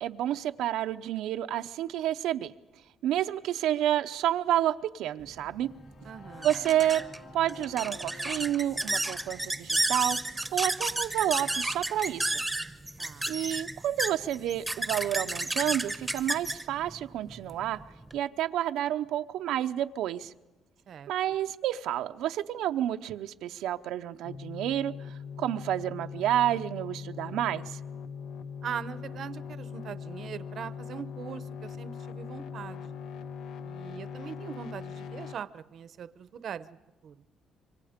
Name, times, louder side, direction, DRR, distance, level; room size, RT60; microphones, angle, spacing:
voice 1, 0.0-2.5 3.0-5.7 6.4-7.1 7.3-10.2 10.5-12.4 13.3-17.8 18.1-20.3 21.1-27.8, right 12 dB, 85° right, 0.7 m, -30 dB
sound 1, 5.3-18.2, right 2 dB, 5° right, 0.9 m, -33 dB
sound 2, 5.5-13.4, left 4 dB, 45° left, 3.2 m, -54 dB
voice 2, 6.0-6.5 13.0-13.3 20.9-21.1 28.6-33.0 33.6-36.7 37.0-37.2, right 8 dB, 50° right, 0.8 m, -41 dB
sound 3, 24.2-35.4, left 6 dB, 75° left, 1.0 m, -41 dB
27.0 x 24.5 x 5.1 m
cardioid pair, 160°, 0 cm